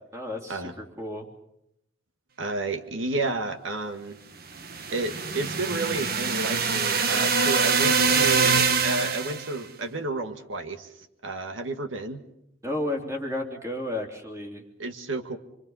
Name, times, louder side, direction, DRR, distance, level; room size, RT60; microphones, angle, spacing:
voice 1, 0.1-1.3 12.6-14.6, left 1 dB, 15° right, 1 dB, 3.4 m, -32 dB
voice 2, 2.4-4.2 4.9-12.2 14.8-15.4, right 2 dB, 85° right, 6 dB, 1.8 m, -31 dB
sound 1, 4.5-9.5, right 5 dB, 50° right, 1.3 m, -24 dB
27.0 x 24.5 x 5.6 m, 0.80 s
head